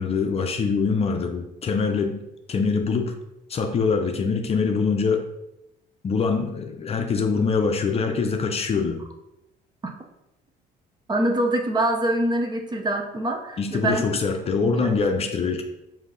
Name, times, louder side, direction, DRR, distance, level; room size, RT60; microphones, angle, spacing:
voice 1, 0.0-2.2 2.5-3.1 3.5-5.2 6.0-9.0 13.6-15.6, left 5 dB, 35° left, 4 dB, 0.6 m, -24 dB
voice 2, 11.1-14.2 14.6-14.9, right 1 dB, 25° right, 3 dB, 0.7 m, -25 dB
5.1 x 2.8 x 3.8 m, 0.87 s
cardioid pair, 110°, 17 cm